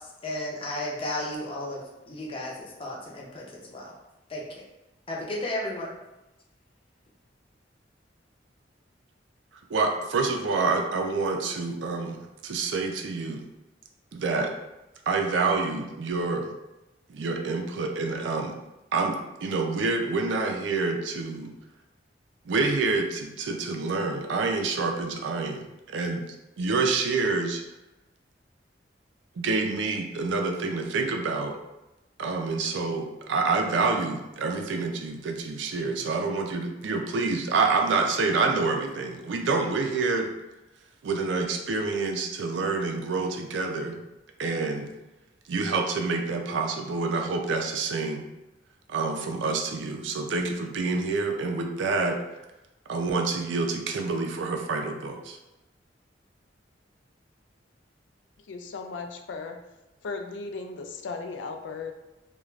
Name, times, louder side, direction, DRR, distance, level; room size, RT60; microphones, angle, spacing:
voice 1, 0.2-3.9 4.3-4.4 5.1-5.9, left 1 dB, 30° left, -3 dB, 0.6 m, -33 dB
voice 2, 9.7-13.5 14.1-14.5 15.1-16.5 17.1-18.6 18.9-21.5 22.5-26.2 26.6-27.6 29.4-31.6 32.2-40.3 41.0-44.0 44.4-44.9 45.5-48.3 48.9-52.2 52.9-55.4, right 3 dB, 85° right, 3 dB, 0.4 m, -27 dB
voice 3, 58.5-59.6 60.0-61.9, left 4 dB, 90° left, 5 dB, 0.4 m, -36 dB
2.4 x 2.2 x 3.1 m, 0.98 s
head